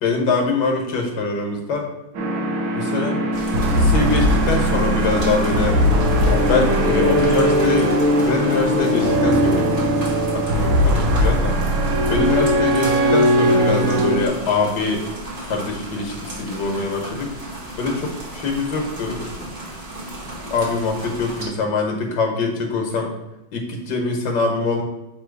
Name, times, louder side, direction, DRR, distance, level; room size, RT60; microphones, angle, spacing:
voice 1, 0.0-1.9 2.7-3.3 3.6-5.8 6.2-9.8 10.3-11.6 12.1-15.1 15.4-17.3 17.8-19.5 20.4-23.1 23.5-24.8, left 3 dB, 65° left, 1 dB, 1.7 m, -23 dB
sound 1, 2.1-14.3, equal, 85° right, 1.8 m, -19 dB
sound 2, 3.3-21.5, right 1 dB, 25° right, 0.9 m, -34 dB
6.9 x 3.0 x 4.5 m, 0.97 s
omnidirectional pair, 2.1 m